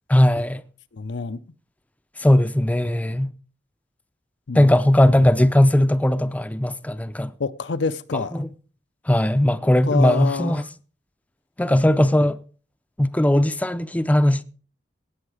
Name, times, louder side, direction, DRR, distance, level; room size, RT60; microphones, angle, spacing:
voice 1, 0.1-0.6 2.2-3.3 4.5-7.3 8.3-8.5 9.1-10.6 11.6-12.4 13.0-14.4, left 1 dB, 10° left, 0.5 m, -18 dB
voice 2, 0.9-1.4 4.5-4.7 7.4-8.4 9.8-10.6, left 4 dB, 80° left, 0.6 m, -27 dB
17.5 x 7.1 x 4.9 m
head